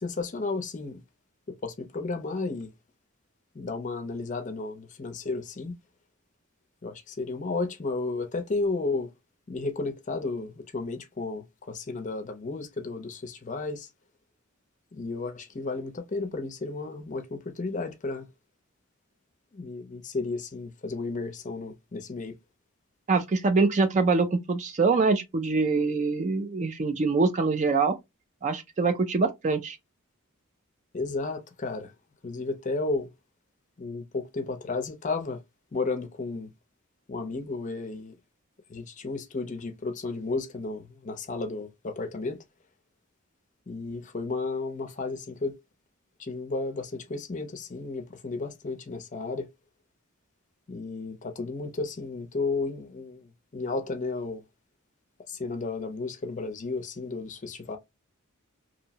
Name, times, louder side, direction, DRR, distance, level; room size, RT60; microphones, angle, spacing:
voice 1, 0.0-1.0 1.6-2.7 3.6-5.7 6.8-9.1 9.5-13.9 14.9-18.2 19.6-22.4 30.9-31.9 32.2-33.1 33.8-35.4 35.7-36.5 37.1-38.1 38.7-42.4 43.7-45.5 46.3-49.5 50.7-53.2 53.5-54.4 55.4-57.8, left 3 dB, 35° left, 0.5 m, -33 dB
voice 2, 23.1-28.0 28.4-29.8, right 4 dB, 35° right, 0.4 m, -24 dB
2.7 x 2.0 x 2.7 m
head